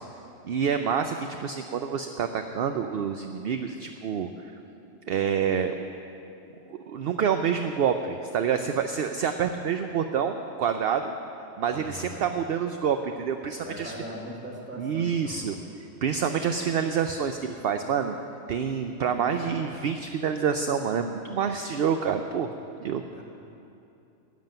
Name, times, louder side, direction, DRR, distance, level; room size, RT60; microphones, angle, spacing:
voice 1, 0.4-4.3 5.1-5.7 6.7-11.2 11.6-13.9 14.8-15.6 16.0-18.2 18.5-22.5 22.8-23.0, right 7 dB, 60° right, 7 dB, 0.7 m, -27 dB
voice 2, 11.7-12.3 13.6-15.4 19.0-19.3 19.6-19.8 23.1-23.2, equal, 10° right, -3 dB, 1.9 m, -40 dB
13.0 x 7.3 x 9.1 m, 2.7 s
omnidirectional pair, 1.3 m